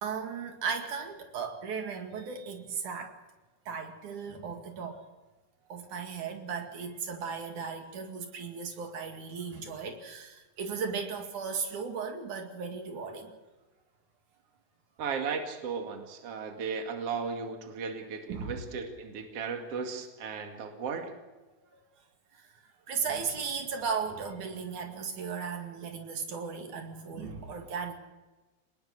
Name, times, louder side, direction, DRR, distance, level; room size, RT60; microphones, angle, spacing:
voice 1, 0.0-3.1 3.7-5.0 5.7-13.3 18.3-18.6 21.7-21.8 22.3-22.6 22.9-27.9, right 5 dB, 80° right, 4 dB, 3.7 m, -36 dB
voice 2, 15.0-21.1, right 5 dB, 55° right, 4 dB, 3.2 m, -36 dB
24.5 x 20.0 x 6.6 m, 1.2 s
omnidirectional pair, 3.4 m